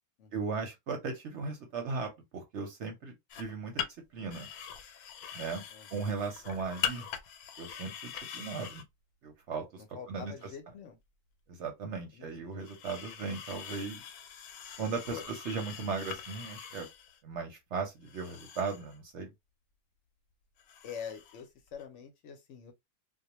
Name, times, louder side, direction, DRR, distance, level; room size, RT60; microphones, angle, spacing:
voice 1, 0.3-3.8 4.1-4.5 5.3-5.6 5.9-7.1 7.6-8.8 9.2-9.8 10.1-10.3 11.6-14.1 14.8-16.9 17.2-19.3, right 4 dB, 60° right, 0.8 m, -37 dB
sound 1, 3.3-3.5 3.8-3.9 4.3-8.8 10.4-10.5 12.6-17.2 18.0-19.0 20.6-21.4 21.7-21.8, left 9 dB, 85° left, 1.1 m, -42 dB
voice 2, 9.8-11.0 11.9-12.6 15.1-15.3 20.8-22.7, left 7 dB, 65° left, 0.8 m, -45 dB
2.3 x 2.1 x 2.9 m
omnidirectional pair, 1.5 m